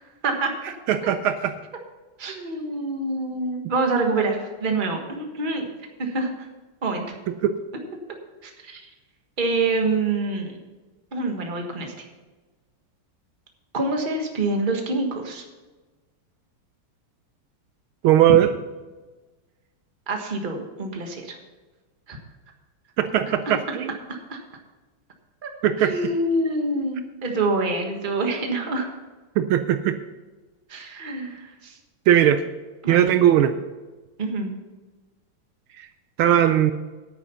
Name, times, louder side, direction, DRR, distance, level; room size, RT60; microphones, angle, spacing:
voice 1, 0.9-1.5 7.4-7.5 18.0-18.5 23.0-23.9 25.6-25.9 29.4-30.0 32.1-32.4 32.9-33.5 36.2-36.7, right 11 dB, 75° right, 9 dB, 1.4 m, -18 dB
voice 2, 2.2-5.7 6.0-6.5 6.8-7.1 8.4-8.8 9.4-10.5 11.1-11.9 13.7-15.4 20.1-21.4 22.1-22.2 23.4-23.5 24.1-24.4 25.4-25.5 25.8-28.9 30.7-31.8 32.8-33.1 34.2-34.5, right 2 dB, 25° right, 3 dB, 1.4 m, -26 dB
10.0 x 9.1 x 5.6 m, 1.2 s
omnidirectional pair, 2.4 m